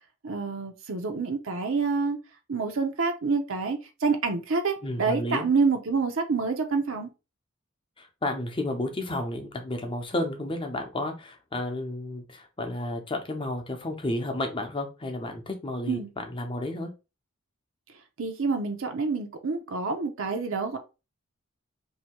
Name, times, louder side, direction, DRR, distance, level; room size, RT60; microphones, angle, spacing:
voice 1, 0.2-2.2 2.5-7.1 15.9-16.1 18.2-20.8, right 4 dB, 70° right, 0.7 m, -27 dB
voice 2, 4.8-5.4 8.0-16.9, left 1 dB, 25° left, 0.7 m, -32 dB
2.8 x 2.7 x 4.3 m
head